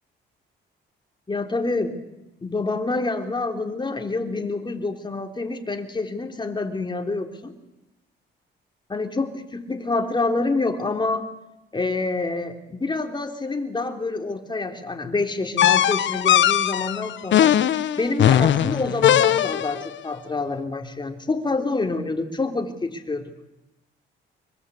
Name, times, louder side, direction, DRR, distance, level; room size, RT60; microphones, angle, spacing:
voice 1, 1.3-2.0 2.4-7.5 8.9-11.3 11.7-17.6 18.0-23.2, left 3 dB, 25° left, 5 dB, 3.5 m, -27 dB
sound 1, 15.6-19.9, left 11 dB, 65° left, 1.1 m, -19 dB
25.0 x 22.5 x 8.4 m, 0.95 s
cardioid pair, 90°, 20 cm